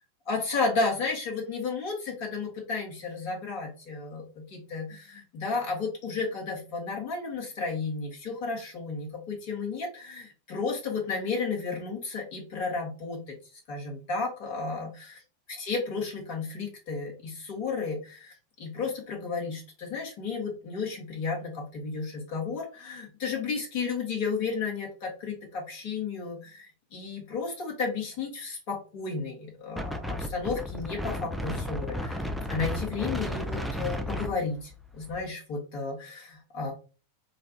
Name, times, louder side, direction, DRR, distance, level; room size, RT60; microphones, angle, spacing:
voice 1, 0.2-13.4 13.7-15.2 15.5-32.2 32.5-36.7, left 4 dB, 50° left, 0 dB, 1.3 m, -33 dB
Wind, 29.8-35.3, left 1 dB, ahead, 0.4 m, -33 dB
3.1 x 2.3 x 2.8 m, 0.35 s
figure-of-eight pair, 90°, 0 cm